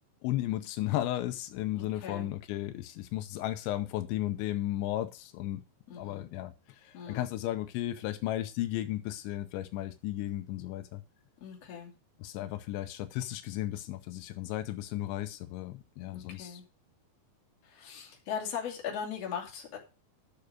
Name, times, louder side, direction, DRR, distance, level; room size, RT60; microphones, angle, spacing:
voice 1, 0.2-5.6 5.9-11.0 12.2-16.6, left 14 dB, 85° left, 3.0 m, -34 dB
voice 2, 1.7-2.3 5.9-6.2 6.9-7.3 11.4-11.9 16.1-16.6 17.6-19.8, left 7 dB, 40° left, 3.1 m, -39 dB
10.5 x 6.8 x 5.2 m
omnidirectional pair, 5.2 m